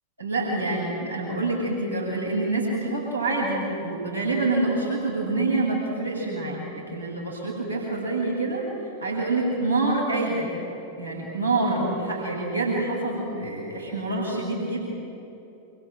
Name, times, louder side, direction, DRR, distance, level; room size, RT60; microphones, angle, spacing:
voice 1, 0.2-10.5 11.0-14.8, right 2 dB, 90° right, -5 dB, 7.3 m, -26 dB
27.0 x 24.5 x 8.1 m, 2.9 s
figure-of-eight pair, 90°, 0 cm